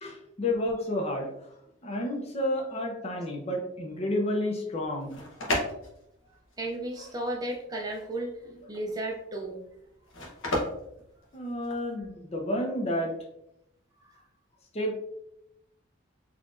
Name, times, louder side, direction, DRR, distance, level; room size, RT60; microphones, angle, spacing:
voice 1, 0.0-1.5 1.8-5.2 11.3-13.1 14.7-15.0, left 1 dB, 30° left, 1 dB, 0.6 m, -30 dB
sound 1, 4.8-11.9, left 1 dB, 75° left, 1.0 m, -35 dB
voice 2, 6.6-9.6, right 1 dB, 20° right, 1 dB, 0.4 m, -34 dB
4.1 x 2.9 x 2.5 m, 0.81 s
head